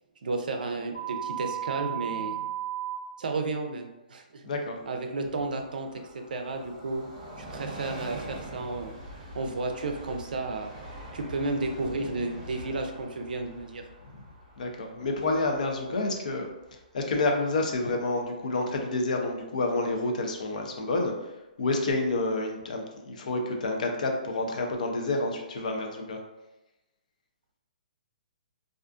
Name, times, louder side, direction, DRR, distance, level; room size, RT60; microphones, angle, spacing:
voice 1, 0.2-2.5 3.2-4.4 4.9-5.9 6.1-7.1 7.4-8.9 9.3-10.7 11.1-13.8, right 3 dB, 75° right, 5 dB, 0.4 m, -32 dB
sound 1, 0.9-3.0, right 12 dB, 40° left, 1.0 m, -33 dB
voice 2, 4.4-4.8 14.6-26.2, left 2 dB, 60° left, 2 dB, 0.5 m, -29 dB
Train, 4.5-17.8 18.1-18.2, right 1 dB, 25° right, 0.5 m, -45 dB
2.4 x 2.4 x 2.3 m, 0.97 s
hypercardioid pair, 170°, 5 cm